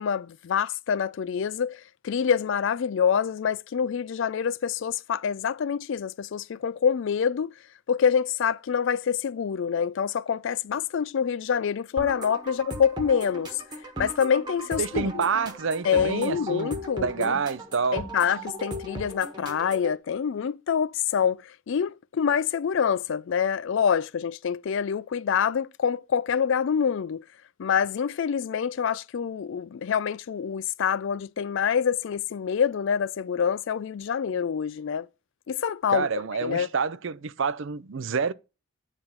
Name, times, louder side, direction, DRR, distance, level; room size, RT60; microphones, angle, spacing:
voice 1, 0.0-7.5 7.9-13.6 14.0-15.3 15.8-17.3 17.9-27.3 27.6-35.1 35.5-36.1 36.4-36.7, left 7 dB, 55° left, 0.3 m, -26 dB
sound 1, 12.0-20.0, right 1 dB, 20° right, 1.4 m, -38 dB
voice 2, 14.8-16.7 17.0-18.1 35.9-38.3, right 5 dB, 55° right, 0.5 m, -28 dB
9.8 x 3.6 x 5.7 m
head